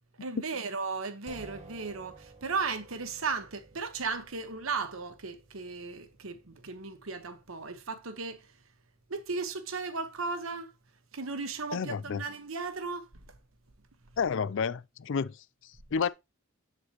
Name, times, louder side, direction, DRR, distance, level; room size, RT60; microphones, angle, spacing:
voice 1, 0.2-8.4 9.1-10.7 11.1-13.1, right 4 dB, 75° right, 1.1 m, -36 dB
sound 1, 1.3-11.0, right 2 dB, 30° right, 1.5 m, -56 dB
voice 2, 11.7-12.2 14.2-16.1, left 6 dB, 60° left, 0.4 m, -31 dB
8.2 x 7.5 x 2.9 m
head